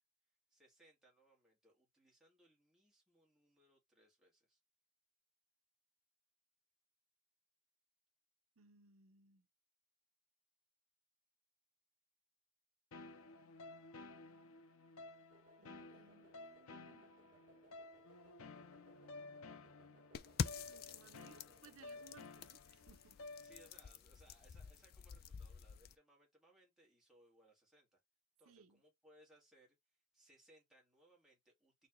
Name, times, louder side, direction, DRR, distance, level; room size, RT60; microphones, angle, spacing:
voice 1, 0.5-4.6 23.4-28.0 28.4-29.8 30.1-31.9, right 1 dB, ahead, 1.7 m, -69 dB
voice 2, 8.6-9.5 15.6-17.1 20.6-23.2 28.5-28.8, right 5 dB, 80° right, 0.6 m, -65 dB
sound 1, 12.9-23.9, left 3 dB, 90° left, 0.7 m, -55 dB
sound 2, 15.3-22.2, right 2 dB, 40° right, 2.0 m, -68 dB
sound 3, 20.1-25.9, left 6 dB, 45° left, 0.3 m, -47 dB
4.2 x 3.0 x 3.0 m
head